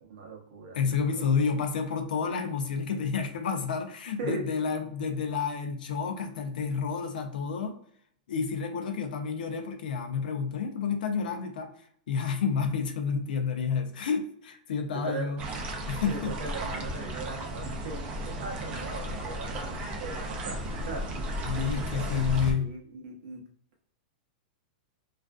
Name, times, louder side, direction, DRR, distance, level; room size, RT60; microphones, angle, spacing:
voice 1, 0.0-1.2 4.2-4.4 14.9-15.2 16.1-21.9 22.1-23.4, right 3 dB, 60° right, -1 dB, 0.7 m, -40 dB
voice 2, 0.7-7.8 8.3-11.7 12.1-15.4 15.9-16.4 21.4-22.7, left 6 dB, 80° left, 6 dB, 0.5 m, -30 dB
sound 1, 15.4-22.5, equal, 25° right, 0.4 m, -34 dB
2.4 x 2.4 x 2.2 m, 0.63 s
supercardioid pair, 155°, 5 cm